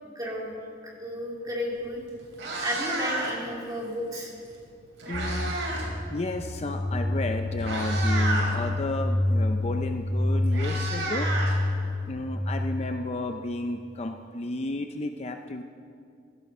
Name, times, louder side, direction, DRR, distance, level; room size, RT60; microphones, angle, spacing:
voice 1, 0.1-0.5 0.8-2.0 2.6-4.3, equal, 20° right, -3 dB, 3.1 m, -33 dB
Meow, 1.7-1.9 2.2-3.5 4.6-5.9 6.2-6.5 7.2-7.3 7.6-8.5 9.8-9.9 10.2-12.1, right 2 dB, 75° right, 4.0 m, -31 dB
voice 2, 5.1-5.6 6.1-11.3 12.1-15.6, left 2 dB, 35° left, 5 dB, 0.6 m, -32 dB
sound 1, 5.1-12.9, left 1 dB, 5° left, 1.4 m, -28 dB
16.0 x 13.5 x 5.5 m, 2.4 s
head